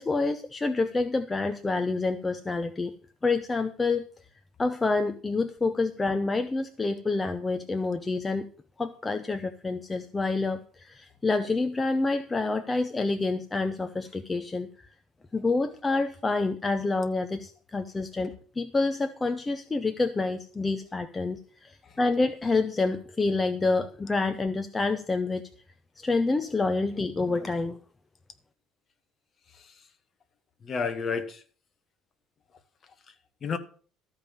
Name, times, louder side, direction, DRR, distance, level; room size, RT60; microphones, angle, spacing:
voice 1, 0.0-2.9 3.2-4.0 4.6-8.5 8.8-14.7 15.3-25.4 26.0-27.8, left 3 dB, 15° left, 8 dB, 0.6 m, -28 dB
voice 2, 29.5-29.9 30.6-31.4 33.1-33.2 33.4-33.6, left 5 dB, 35° left, 9 dB, 1.3 m, -32 dB
13.5 x 5.2 x 7.3 m, 0.42 s
cardioid pair, 145°, 0 cm